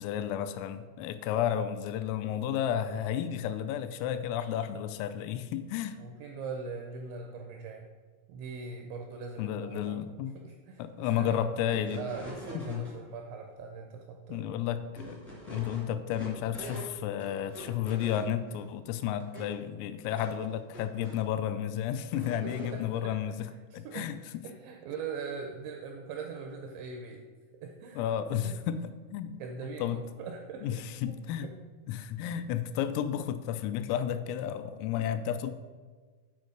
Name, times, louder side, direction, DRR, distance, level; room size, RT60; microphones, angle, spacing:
voice 1, 0.0-6.0 9.4-10.4 10.8-12.0 12.5-12.9 14.3-15.2 15.5-24.4 28.0-29.4 29.8-30.0 30.6-31.5 31.9-35.5, left 10 dB, 85° left, 10 dB, 3.1 m, -32 dB
voice 2, 6.0-7.9 8.3-10.0 10.4-11.5 12.0-14.5 22.4-23.1 23.7-24.1 24.4-27.2 27.6-28.0 28.4-28.5 29.4-31.2 31.4-31.5, right 5 dB, 85° right, 3 dB, 2.6 m, -41 dB
sound 1, 11.7-12.9 14.9-16.9 17.2-18.6 19.2-19.5 20.1-21.2 22.1-22.8, right 1 dB, 20° right, 0.3 m, -44 dB
9.6 x 4.5 x 6.3 m, 1.4 s
omnidirectional pair, 6.0 m